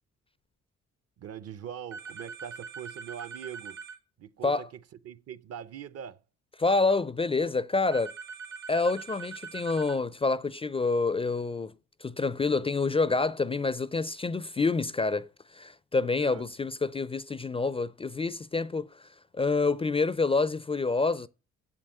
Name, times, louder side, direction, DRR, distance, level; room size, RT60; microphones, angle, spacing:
voice 1, 1.2-3.8 4.2-4.7 5.0-6.2 16.2-16.5, right 9 dB, 55° right, 0.7 m, -42 dB
sound 1, 1.9-4.0 7.9-10.0, right 5 dB, 80° right, 2.1 m, -42 dB
voice 2, 6.6-8.1 8.7-11.7 12.0-19.0 19.3-21.3, left 3 dB, 20° left, 0.4 m, -27 dB
7.5 x 7.5 x 6.5 m
cardioid pair, 90°, 30 cm